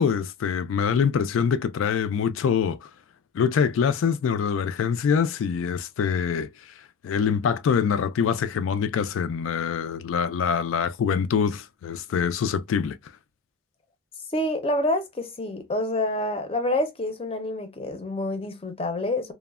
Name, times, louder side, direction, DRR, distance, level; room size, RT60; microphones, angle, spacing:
voice 1, 0.0-2.9 3.3-6.5 7.0-13.0, left 7 dB, 90° left, 0.3 m, -24 dB
voice 2, 14.3-19.3, left 1 dB, 30° left, 0.5 m, -27 dB
3.0 x 2.1 x 2.3 m
head